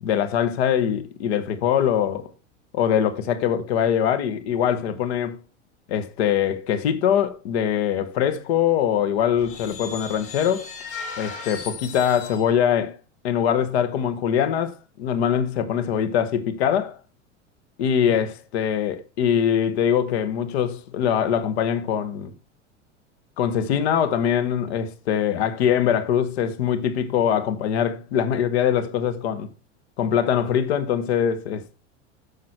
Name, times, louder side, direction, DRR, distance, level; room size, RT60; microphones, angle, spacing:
voice 1, 0.0-2.3 2.7-5.4 5.9-10.7 11.2-13.0 13.2-17.0 17.8-22.3 23.4-29.5 30.0-31.8, left 9 dB, 55° left, 1.2 m, -23 dB
sound 1, 9.4-12.5, left 5 dB, 35° left, 4.5 m, -37 dB
9.3 x 6.7 x 4.2 m
figure-of-eight pair, 80°, 37 cm